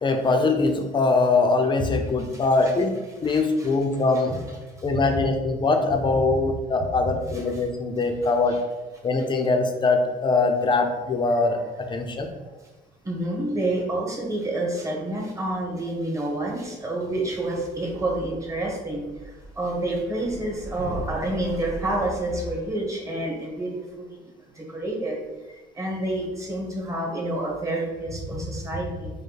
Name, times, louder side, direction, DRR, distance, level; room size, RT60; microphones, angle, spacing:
voice 1, 0.0-2.9 3.2-4.4 4.8-8.6 9.0-11.6 11.9-12.3, left 3 dB, 30° left, 4 dB, 0.6 m, -22 dB
voice 2, 2.2-2.7 3.2-3.7 5.1-5.2 7.1-7.6 8.2-8.6 13.0-19.0 19.6-24.3 24.6-25.2 25.5-29.1, right 1 dB, 20° right, -2 dB, 1.2 m, -29 dB
5.2 x 2.2 x 4.0 m, 1.2 s
cardioid pair, 110°, 17 cm